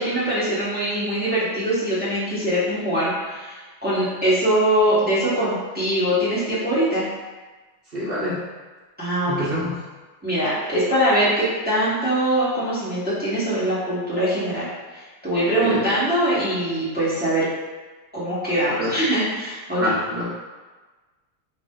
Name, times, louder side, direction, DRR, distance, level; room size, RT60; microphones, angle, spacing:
voice 1, 0.0-7.0 9.0-9.5 10.2-14.7 14.9-17.5 18.1-19.9, right 1 dB, 5° right, -11 dB, 1.0 m, -22 dB
voice 2, 7.9-8.4 9.3-9.8 15.6-15.8 18.7-19.0 19.8-20.2, equal, 80° right, -8 dB, 0.5 m, -26 dB
4.8 x 2.5 x 3.8 m, 1.3 s
omnidirectional pair, 2.4 m